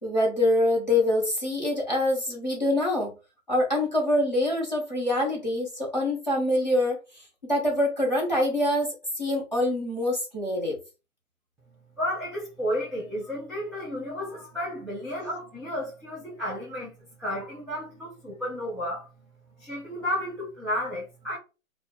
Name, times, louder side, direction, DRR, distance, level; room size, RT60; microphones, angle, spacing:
voice 1, 0.0-3.1 3.5-8.9 9.1-10.8, left 1 dB, 30° left, 0.8 m, -25 dB
voice 2, 12.0-16.9 17.2-19.1 19.6-21.4, equal, ahead, 0.4 m, -32 dB
2.2 x 2.0 x 3.0 m
hypercardioid pair, 180°, 43 cm